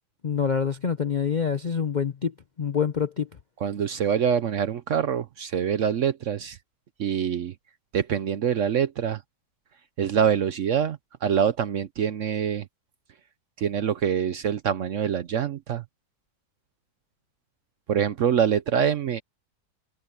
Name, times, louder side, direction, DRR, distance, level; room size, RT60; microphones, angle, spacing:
voice 1, 0.2-2.3 2.6-3.3, left 6 dB, 50° left, 0.5 m, -26 dB
voice 2, 3.6-6.6 7.0-7.5 7.9-9.2 10.0-12.7 13.6-15.8 17.9-19.2, right 8 dB, 60° right, 0.9 m, -25 dB
omnidirectional pair, 1.8 m